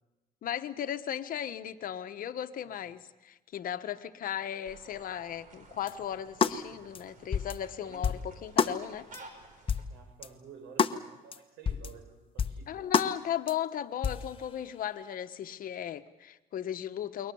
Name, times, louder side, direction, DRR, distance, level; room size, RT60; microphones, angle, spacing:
voice 1, 0.4-9.1 12.7-17.3, left 10 dB, 55° left, 10 dB, 1.3 m, -36 dB
sound 1, 4.6-9.9, right 3 dB, 50° right, 4.9 m, -53 dB
sound 2, 5.9-6.0 6.4-6.6 6.9-7.0 7.3-7.6 8.0-8.3 8.6-8.8 9.1-9.2 9.7-9.9 10.2-10.3 10.8-11.0 11.3-11.4 11.7-11.9 12.4-12.6 12.9-13.1 13.5-13.6 14.0-14.3, left 6 dB, 30° left, 1.2 m, -28 dB
voice 2, 9.9-12.9, right 6 dB, 85° right, 7 dB, 5.6 m, -52 dB
28.5 x 23.0 x 7.1 m, 1.1 s
cardioid pair, 110°, 17 cm